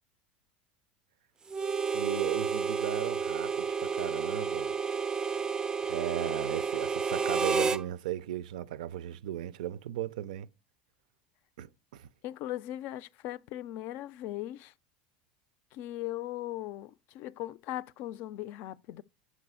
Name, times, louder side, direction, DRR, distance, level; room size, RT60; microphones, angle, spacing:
Harmonica, 1.5-7.8, right 5 dB, 20° right, 0.4 m, -31 dB
voice 1, 1.9-4.7 5.8-10.5 11.6-12.1, right 12 dB, 85° right, 0.4 m, -36 dB
voice 2, 12.2-14.7 15.7-19.0, left 14 dB, 60° left, 0.4 m, -39 dB
6.1 x 4.9 x 5.5 m
supercardioid pair, 105°, 4 cm